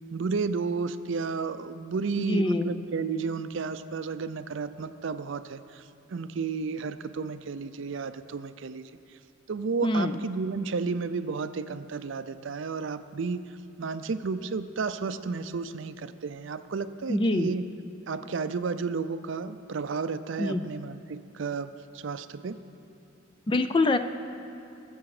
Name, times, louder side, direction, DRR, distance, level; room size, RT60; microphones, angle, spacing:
voice 1, 0.1-8.9 9.5-17.6 18.1-22.6, right 4 dB, 60° right, 12 dB, 0.4 m, -32 dB
voice 2, 2.2-2.7 9.8-10.2 17.1-17.5 20.4-20.6 23.5-24.0, left 2 dB, 25° left, 9 dB, 0.4 m, -24 dB
21.0 x 7.2 x 4.9 m, 2.7 s
head